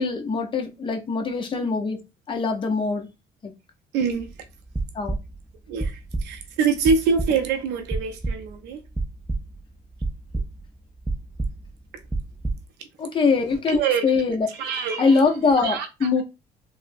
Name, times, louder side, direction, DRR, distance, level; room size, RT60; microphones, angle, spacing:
voice 1, 0.0-2.0 2.3-3.1 3.4-3.5 4.9-5.2 13.0-14.5 15.0-16.2, left 4 dB, 30° left, 0.6 m, -22 dB
voice 2, 3.9-4.3 5.7-8.8 13.7-14.0 14.5-15.2 15.6-15.9, right 5 dB, 90° right, 0.5 m, -25 dB
sound 1, 4.1-4.3 4.6-5.5 5.8-6.4 6.8-7.5 7.9-8.7 8.9-9.6 10.0-10.8 11.1-12.6, right 2 dB, 5° right, 0.3 m, -29 dB
3.0 x 2.0 x 2.6 m
cardioid pair, 110°, 17 cm